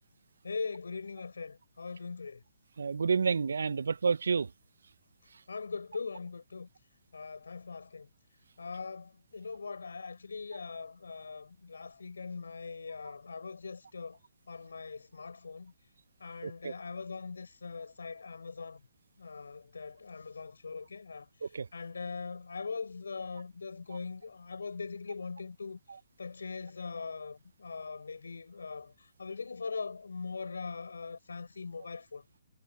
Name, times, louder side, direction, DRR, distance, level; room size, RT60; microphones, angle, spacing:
voice 1, 0.4-2.4 5.5-6.7 7.1-8.1 8.6-14.2 14.5-15.7 16.2-18.9 19.2-25.8 26.2-32.2, left 4 dB, 80° left, 6.1 m, -41 dB
voice 2, 2.8-4.5 16.4-16.7 21.4-21.7, right 5 dB, 75° right, 0.8 m, -29 dB
figure-of-eight pair, 135°, 0 cm